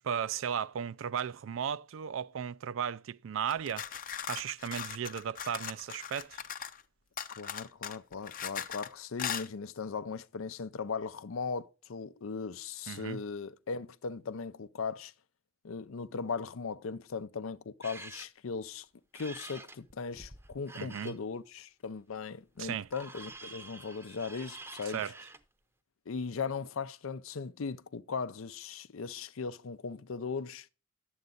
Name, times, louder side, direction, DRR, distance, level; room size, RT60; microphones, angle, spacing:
voice 1, 0.0-3.9 4.3-6.4 12.9-13.2 20.7-21.1 22.6-22.9 24.9-25.1, right 8 dB, 70° right, 0.4 m, -35 dB
sound 1, 3.5-6.8 7.2-8.9 9.2-9.5, left 8 dB, 45° left, 0.6 m, -39 dB
voice 2, 7.4-15.1 15.6-18.9 19.1-25.0 26.1-30.7, left 5 dB, 90° left, 0.6 m, -38 dB
sound 2, 17.8-18.3 19.1-21.1 22.6-25.4, right 2 dB, 15° right, 0.7 m, -48 dB
11.0 x 8.0 x 3.9 m
head